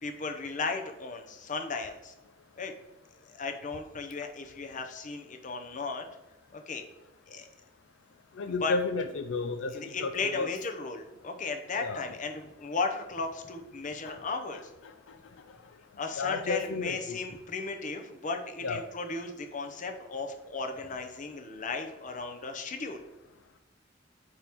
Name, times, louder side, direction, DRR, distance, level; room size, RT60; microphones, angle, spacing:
voice 1, 0.0-2.1 2.6-2.7 3.3-6.1 6.5-6.8 7.3-7.5 8.6-8.7 9.7-14.6 16.0-23.0, left 4 dB, 45° left, 5 dB, 0.7 m, -35 dB
voice 2, 8.4-10.5 11.8-12.0 14.0-14.2 16.2-17.2 18.6-18.8, left 3 dB, 80° left, 9 dB, 0.4 m, -32 dB
8.8 x 3.0 x 3.5 m, 1.0 s
head